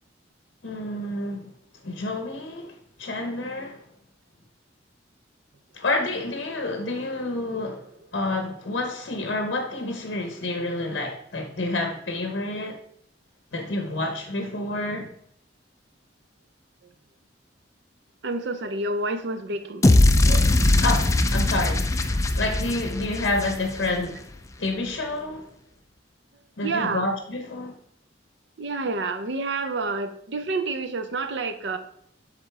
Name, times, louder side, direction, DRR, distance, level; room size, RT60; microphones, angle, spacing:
voice 1, 0.6-1.5 1.8-3.8 5.7-12.8 13.5-15.1 20.7-24.3 24.6-25.5 26.6-27.7, left 2 dB, 65° left, 0.8 m, -29 dB
voice 2, 18.2-19.9 20.2-20.6 26.6-27.1 28.6-31.8, right 3 dB, 65° right, 0.6 m, -29 dB
sound 1, 19.8-24.1, left 2 dB, 15° left, 0.3 m, -20 dB
8.0 x 3.7 x 3.3 m
head